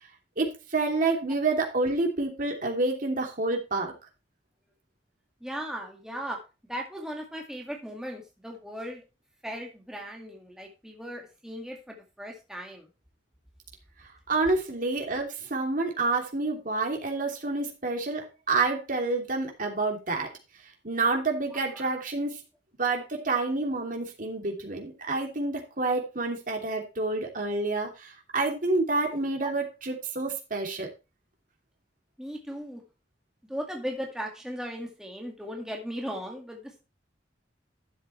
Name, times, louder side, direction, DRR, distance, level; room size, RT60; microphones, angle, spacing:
voice 1, 0.4-3.9 14.3-20.3 20.8-22.4 22.8-30.9, right 3 dB, 50° right, 2 dB, 3.0 m, -28 dB
voice 2, 5.4-6.4 6.7-9.0 9.4-12.9 21.7-22.0 29.4-29.5 32.2-32.8 33.5-36.8, equal, 5° right, 0 dB, 2.1 m, -37 dB
12.0 x 7.6 x 3.2 m, 0.29 s
head